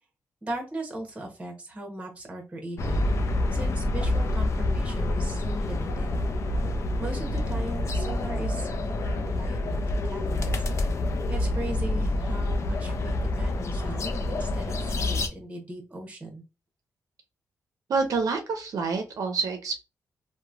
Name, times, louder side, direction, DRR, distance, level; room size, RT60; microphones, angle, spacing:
voice 1, 0.4-3.1 3.5-6.2 7.0-10.6 11.3-16.4, right 1 dB, 20° right, 1 dB, 1.0 m, -38 dB
sound 1, 2.8-15.3, left 2 dB, 50° left, 0.5 m, -27 dB
voice 2, 17.9-19.9, right 4 dB, 65° right, 5 dB, 0.6 m, -27 dB
2.9 x 2.1 x 2.5 m, 0.29 s
cardioid pair, 100°, 6 cm